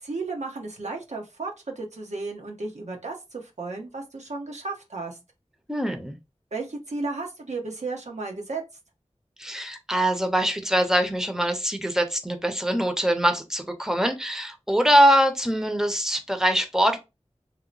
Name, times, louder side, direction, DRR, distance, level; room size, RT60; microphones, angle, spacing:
voice 1, 0.0-5.2 6.5-8.6, right 3 dB, 80° right, 0.9 m, -34 dB
voice 2, 5.7-6.2 9.4-17.0, equal, 5° right, 0.7 m, -23 dB
2.9 x 2.0 x 3.8 m
wide cardioid pair, 50°, 12 cm